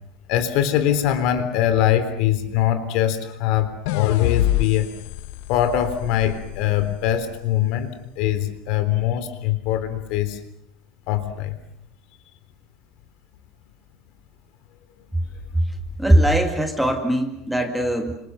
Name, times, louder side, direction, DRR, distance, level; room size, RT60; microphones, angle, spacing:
voice 1, 0.3-4.9 5.5-7.9 8.2-10.4 11.1-11.6, left 11 dB, 55° left, 10 dB, 3.5 m, -22 dB
sound 1, 3.9-7.1, left 13 dB, 75° left, 0.9 m, -26 dB
voice 2, 16.0-18.1, right 1 dB, ahead, 5 dB, 2.1 m, -20 dB
29.5 x 27.0 x 6.6 m, 0.76 s
cardioid pair, 170°, 0 cm